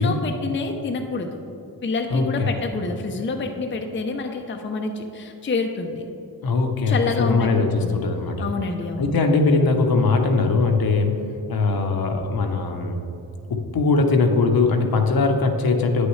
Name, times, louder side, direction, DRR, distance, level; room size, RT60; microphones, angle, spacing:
voice 1, 0.0-1.4 1.8-6.1 6.9-7.5 7.8-8.1 8.4-9.1, left 3 dB, 30° left, 4 dB, 0.6 m, -27 dB
voice 2, 2.1-2.5 6.4-8.5 9.0-11.2 11.5-13.0 13.5-16.1, left 3 dB, 60° left, 4 dB, 0.9 m, -20 dB
8.6 x 6.4 x 3.2 m, 2.8 s
cardioid pair, 70°, 41 cm